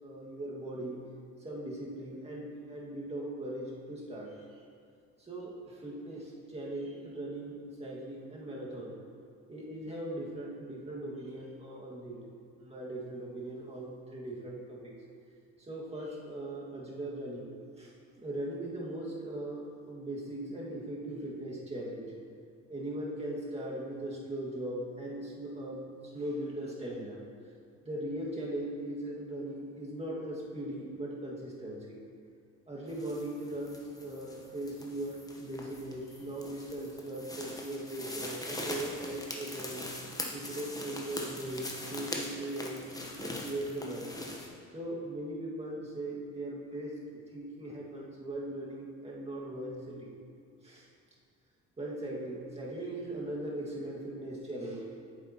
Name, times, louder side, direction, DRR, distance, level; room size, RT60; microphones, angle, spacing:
voice 1, 0.0-1.0 1.4-4.4 5.2-9.0 9.5-12.2 12.6-14.9 15.7-17.5 17.8-22.1 22.7-27.2 27.9-32.0 32.7-39.9 40.3-42.8 43.2-44.1 44.7-50.1 50.6-50.9 51.8-55.0, right 1 dB, 20° right, -4 dB, 1.9 m, -39 dB
sound 1, 32.9-44.5, left 1 dB, 10° left, 1.0 m, -42 dB
9.0 x 7.2 x 3.0 m, 2.2 s
cardioid pair, 90°, 30 cm